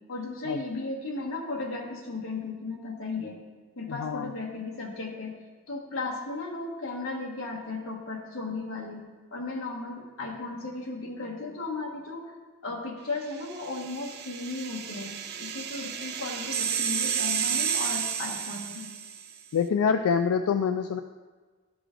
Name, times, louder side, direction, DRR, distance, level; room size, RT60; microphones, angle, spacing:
voice 1, 0.1-3.4 3.8-5.3 5.7-9.0 9.3-12.3 12.6-18.8, left 3 dB, 65° left, 0 dB, 1.3 m, -35 dB
voice 2, 3.9-4.3 19.5-21.0, left 6 dB, 85° left, 7 dB, 0.3 m, -25 dB
sound 1, 13.4-19.3, right 8 dB, 45° right, 0.4 m, -31 dB
12.0 x 4.9 x 3.8 m, 1.4 s
head